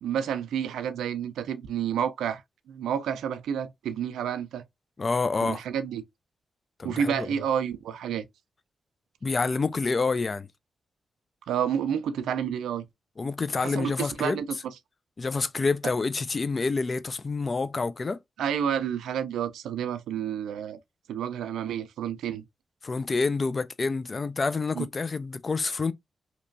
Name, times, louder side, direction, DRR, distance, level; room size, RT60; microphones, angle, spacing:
voice 1, 0.0-2.4 2.7-4.6 5.4-6.0 6.8-8.3 11.5-12.8 13.6-14.4 18.4-20.8 21.1-22.4 24.8-24.9, right 8 dB, 90° right, 0.3 m, -30 dB
voice 2, 5.0-5.6 6.8-7.3 9.2-10.5 13.2-14.4 15.2-18.2 22.8-25.9, left 4 dB, 45° left, 0.3 m, -28 dB
2.9 x 2.2 x 2.5 m
supercardioid pair, 45°, 0 cm